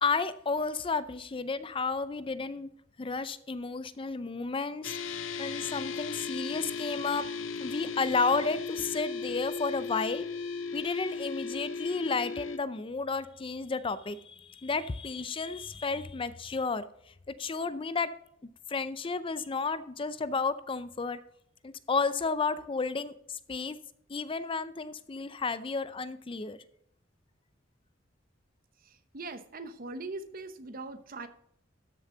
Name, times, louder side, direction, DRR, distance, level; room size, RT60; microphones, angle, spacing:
voice 1, 0.0-2.7 3.0-5.0 5.4-7.3 7.6-10.3 10.7-16.8 17.4-18.1 18.7-21.2 21.6-23.1 23.5-23.8 24.1-26.6, left 4 dB, 25° left, 14 dB, 0.5 m, -32 dB
sound 1, 4.8-12.6, left 4 dB, 85° left, 0.7 m, -36 dB
voice 2, 29.1-31.3, right 3 dB, 50° right, 10 dB, 0.9 m, -40 dB
13.0 x 6.9 x 3.9 m, 0.71 s
head